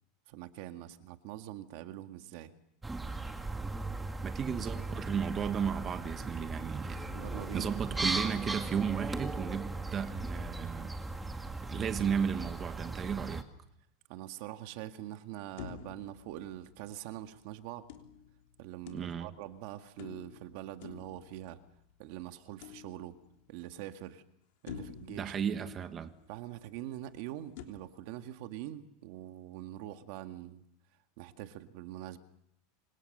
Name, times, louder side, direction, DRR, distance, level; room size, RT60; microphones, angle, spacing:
voice 1, 0.3-2.5 7.1-7.7 14.1-17.9 18.6-21.6 22.0-23.1 23.5-24.2 24.6-25.3 26.3-30.6 31.2-32.2, right 13 dB, 60° right, 1.7 m, -44 dB
sound 1, 2.8-13.4, right 2 dB, 10° right, 2.2 m, -38 dB
voice 2, 4.2-7.1 7.5-10.9 11.6-13.4 18.9-19.3 25.1-26.1, right 7 dB, 25° right, 1.5 m, -34 dB
sound 2, 15.6-17.2 17.9-19.5 20.0-21.9 22.6-23.5 24.0-24.1 24.7-26.3 27.6-27.7, left 9 dB, 70° left, 3.3 m, -49 dB
27.5 x 26.0 x 6.7 m
supercardioid pair, 150°, 0 cm